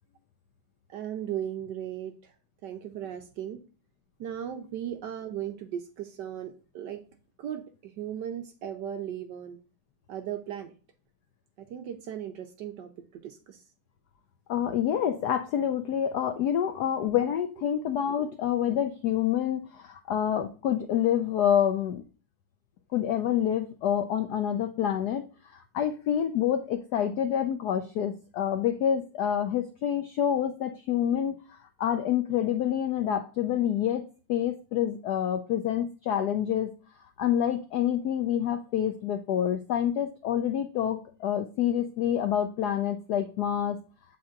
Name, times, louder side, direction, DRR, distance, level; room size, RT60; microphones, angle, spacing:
voice 1, 0.9-2.3 2.6-3.6 4.2-7.0 7.4-9.6 10.1-10.7 11.6-13.6, right 10 dB, 75° right, 6 dB, 1.1 m, -37 dB
voice 2, 14.5-22.0 22.9-25.2 25.7-31.4 31.8-34.0 34.3-36.7 37.2-43.8, left 9 dB, 80° left, 7 dB, 0.8 m, -27 dB
7.4 x 4.4 x 3.7 m, 0.37 s
omnidirectional pair, 2.3 m